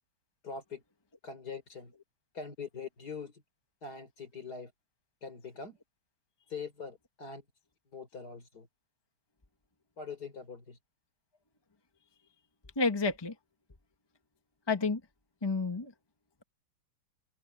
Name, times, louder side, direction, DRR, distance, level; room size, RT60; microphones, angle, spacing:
voice 1, 0.4-0.8 1.2-1.9 2.3-3.3 3.8-4.7 5.2-5.8 6.5-7.4 7.9-8.7 10.0-10.8, left 5 dB, 45° left, 4.4 m, -43 dB
voice 2, 12.8-13.3 14.7-15.0 15.4-15.9, left 3 dB, 15° left, 1.0 m, -29 dB
omnidirectional pair, 2.3 m